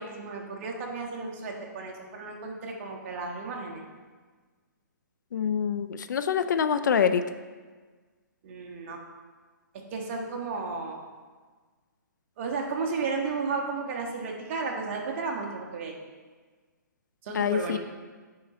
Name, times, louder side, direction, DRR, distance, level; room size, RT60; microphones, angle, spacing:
voice 1, 0.0-3.8 8.4-9.0 9.9-11.0 12.4-16.0 17.2-17.8, right 4 dB, 40° right, 0 dB, 1.2 m, -33 dB
voice 2, 5.3-7.2 17.3-17.8, left 7 dB, 70° left, 11 dB, 0.4 m, -25 dB
8.6 x 3.8 x 4.3 m, 1.4 s
hypercardioid pair, 145°, 10 cm